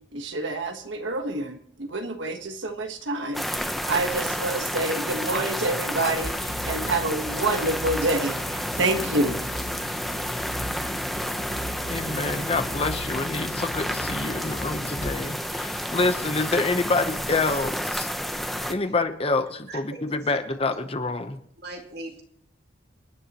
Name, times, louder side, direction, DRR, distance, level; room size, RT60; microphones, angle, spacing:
voice 1, 0.1-9.4, right 2 dB, 75° right, 5 dB, 1.4 m, -27 dB
sound 1, 3.3-18.7, equal, ahead, 0.8 m, -30 dB
sound 2, 6.2-15.1, left 1 dB, 60° left, 1.2 m, -39 dB
voice 2, 11.9-18.1 18.7-21.4, left 3 dB, 30° left, 8 dB, 0.9 m, -27 dB
voice 3, 19.7-20.0 20.3-20.4 21.6-22.2, right 2 dB, 55° right, 2 dB, 2.5 m, -39 dB
28.0 x 9.9 x 3.0 m, 0.65 s
head